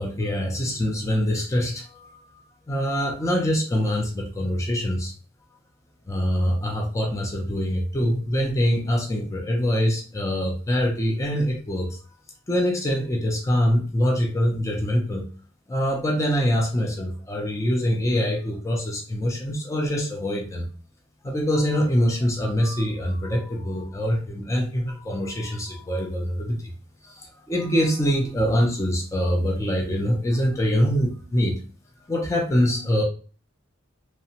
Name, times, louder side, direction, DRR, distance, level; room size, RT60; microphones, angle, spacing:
voice 1, 0.0-2.2 2.7-5.1 6.1-12.0 12.5-15.2 15.7-20.7 21.2-26.7 27.0-31.5 32.1-33.0, equal, 15° left, 0 dB, 0.4 m, -24 dB
2.8 x 2.1 x 2.7 m, 0.39 s
head